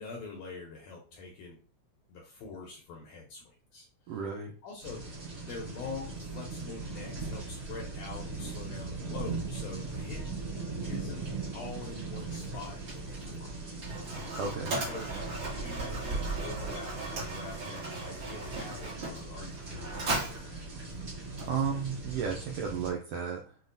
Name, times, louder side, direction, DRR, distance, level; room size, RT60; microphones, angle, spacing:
voice 1, 0.0-1.6 2.1-3.9 4.6-5.0 5.4-10.2 10.8-11.3 11.5-13.6 14.9-15.2 15.5-20.9, left 4 dB, 75° left, 0 dB, 1.8 m, -44 dB
voice 2, 4.1-4.5 14.3-14.8 21.4-23.6, right 6 dB, 80° right, 0 dB, 1.5 m, -33 dB
sound 1, 4.8-22.9, right 3 dB, 30° right, 1.4 m, -39 dB
Mechanisms, 12.3-22.0, right 2 dB, 50° right, 1.9 m, -39 dB
5.8 x 2.4 x 2.6 m, 0.39 s
omnidirectional pair, 3.4 m